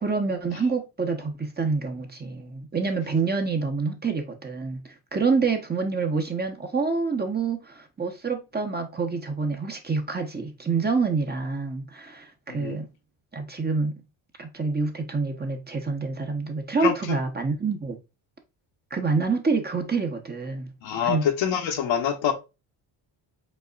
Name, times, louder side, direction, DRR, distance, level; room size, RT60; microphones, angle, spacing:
voice 1, 0.0-4.8 5.1-12.9 13.3-13.9 14.4-18.0 18.9-20.7 21.0-21.2, right 4 dB, 20° right, 1.0 m, -27 dB
voice 2, 12.5-12.8 16.8-17.2 20.8-22.3, left 8 dB, 75° left, 1.3 m, -26 dB
5.5 x 3.6 x 2.4 m
cardioid pair, 110°, 47 cm